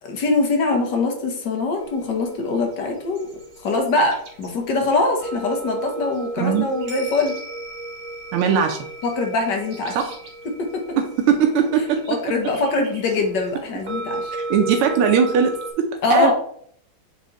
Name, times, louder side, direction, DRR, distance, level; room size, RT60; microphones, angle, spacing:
voice 1, 0.0-3.3 3.6-7.3 9.0-10.0 10.6-10.8 12.1-14.3 16.0-16.3, left 3 dB, 60° left, 3 dB, 1.6 m, -23 dB
sound 1, 1.8-15.7, right 2 dB, 70° right, 2.4 m, -35 dB
voice 2, 8.3-8.8 9.9-10.2 11.0-12.0 12.8-12.9 14.5-16.3, right 7 dB, 85° right, 4 dB, 1.6 m, -19 dB
7.7 x 3.2 x 3.8 m, 0.64 s
omnidirectional pair, 2.3 m